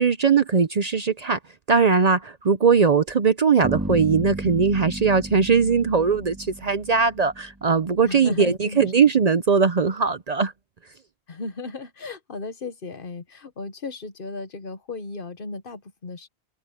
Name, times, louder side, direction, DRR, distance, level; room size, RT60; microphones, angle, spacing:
voice 1, 0.0-1.4 1.7-10.5, right 5 dB, 45° right, 0.7 m, -20 dB
sound 1, 3.6-7.6, right 1 dB, 10° right, 2.3 m, -33 dB
voice 2, 8.0-8.9 11.3-16.3, left 3 dB, 55° left, 1.3 m, -35 dB
omnidirectional pair, 1.1 m